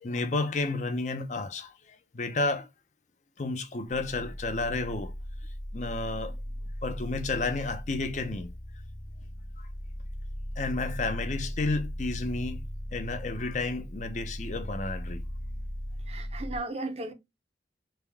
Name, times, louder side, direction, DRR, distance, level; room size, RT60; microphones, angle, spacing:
voice 1, 0.0-1.7 2.1-2.7 3.4-5.1 5.7-6.3 6.8-8.5 10.6-12.6 12.9-15.2, left 3 dB, 40° left, 0.5 m, -31 dB
sound 1, 3.9-16.6, equal, 20° left, 0.8 m, -38 dB
voice 2, 16.1-17.1, right 2 dB, 35° right, 0.6 m, -35 dB
3.4 x 2.2 x 3.4 m
head